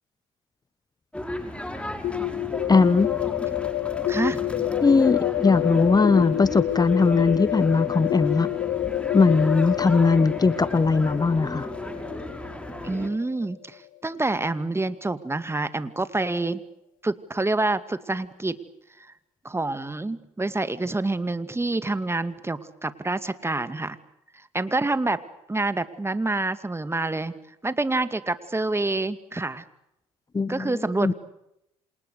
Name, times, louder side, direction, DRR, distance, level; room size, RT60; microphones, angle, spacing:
sound 1, 1.1-13.1, left 1 dB, 5° left, 5.6 m, -36 dB
sound 2, 2.0-13.8, left 14 dB, 60° left, 1.0 m, -28 dB
voice 1, 2.7-3.1 4.8-8.5 9.1-11.7 30.3-30.7 31.0-31.1, left 4 dB, 25° left, 15 dB, 1.4 m, -20 dB
voice 2, 4.1-4.4 12.8-16.6 17.0-18.6 19.0-19.1 19.4-24.0 24.5-25.2 25.5-27.3 27.6-29.6 30.5-31.1, right 2 dB, 15° right, 12 dB, 2.3 m, -27 dB
28.5 x 27.5 x 6.7 m, 0.83 s
hypercardioid pair, 60°, 16 cm